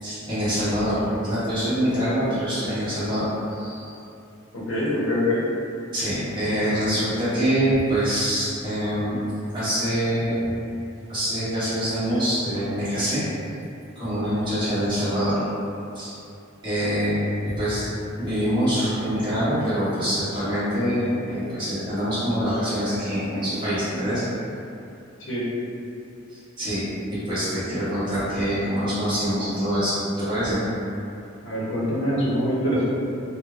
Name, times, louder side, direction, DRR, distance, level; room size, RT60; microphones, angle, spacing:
voice 1, 0.0-4.0 5.9-9.2 9.5-10.4 11.1-13.2 14.0-15.4 15.9-16.1 16.6-17.1 17.4-17.9 18.2-24.2 26.3-26.8 27.1-30.6, equal, 25° right, -14 dB, 1.2 m, -25 dB
voice 2, 4.5-5.4 25.3-25.4 31.4-32.8, equal, 60° left, -8 dB, 0.8 m, -24 dB
3.1 x 2.2 x 2.4 m, 2.7 s
head